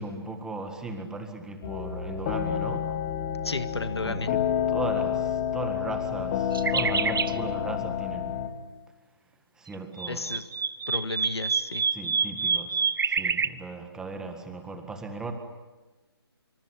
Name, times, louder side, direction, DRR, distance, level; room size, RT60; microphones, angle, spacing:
voice 1, 0.0-2.9 4.0-4.4 4.7-8.5 9.6-10.3 11.9-15.3, right 3 dB, 5° right, 6 dB, 1.7 m, -37 dB
sound 1, 1.6-8.5, left 9 dB, 25° left, 2.0 m, -29 dB
voice 2, 3.4-4.3 10.1-10.5 10.9-11.9, left 3 dB, 80° left, 11 dB, 1.8 m, -32 dB
sound 2, 6.5-7.3 9.7-13.5, right 6 dB, 55° right, 1.2 m, -27 dB
26.5 x 25.0 x 8.5 m, 1.2 s
figure-of-eight pair, 150°, 14 cm